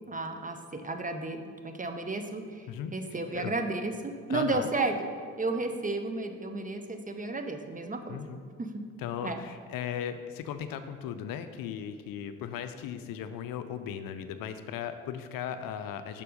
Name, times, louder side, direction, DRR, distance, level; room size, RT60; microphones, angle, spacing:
voice 1, 0.1-1.4 1.6-4.9 5.4-8.2 8.6-8.7 9.2-9.4, right 3 dB, 20° right, 6 dB, 0.7 m, -33 dB
voice 2, 2.7-3.5 4.3-4.7 8.1-8.4 9.0-16.2, left 9 dB, 55° left, 10 dB, 0.6 m, -37 dB
6.7 x 5.3 x 5.1 m, 2.1 s
hypercardioid pair, 50°, 40 cm